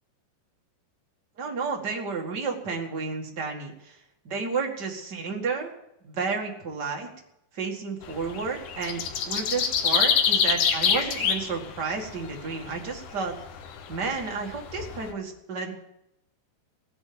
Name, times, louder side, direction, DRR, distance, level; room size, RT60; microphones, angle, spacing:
voice 1, 1.4-4.0 4.2-5.7 6.0-7.1 7.5-13.3 13.9-15.7, right 4 dB, 35° right, 1 dB, 1.8 m, -31 dB
sound 1, 8.0-15.1, left 7 dB, 65° left, 2.1 m, -26 dB
18.0 x 7.0 x 9.6 m, 0.82 s
omnidirectional pair, 4.8 m